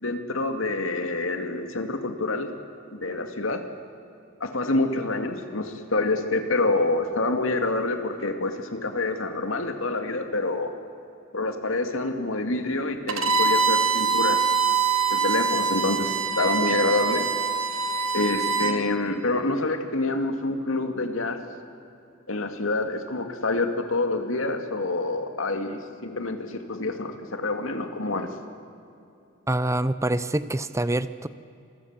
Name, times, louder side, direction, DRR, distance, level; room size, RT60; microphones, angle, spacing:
voice 1, 0.0-2.5 2.9-3.6 4.4-10.7 11.3-14.5 15.1-17.3 18.1-21.4 22.3-28.3, left 2 dB, 85° left, 6 dB, 2.3 m, -27 dB
Bowed string instrument, 13.1-18.8, right 5 dB, 90° right, 1.7 m, -24 dB
voice 2, 29.5-31.3, right 1 dB, 15° right, 14 dB, 0.7 m, -25 dB
27.0 x 22.0 x 7.4 m, 2.6 s
head